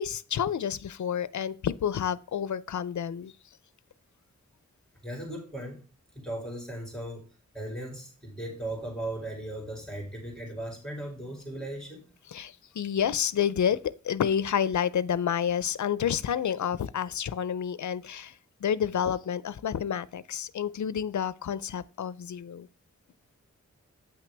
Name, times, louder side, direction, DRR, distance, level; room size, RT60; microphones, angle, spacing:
voice 1, 0.0-3.3 12.3-13.8 14.0-22.7, left 8 dB, 85° left, 0.5 m, -29 dB
voice 2, 5.0-5.8 6.1-7.2 7.5-12.1, right 1 dB, ahead, 2.5 m, -37 dB
8.5 x 5.9 x 3.3 m
wide cardioid pair, 85°, 29 cm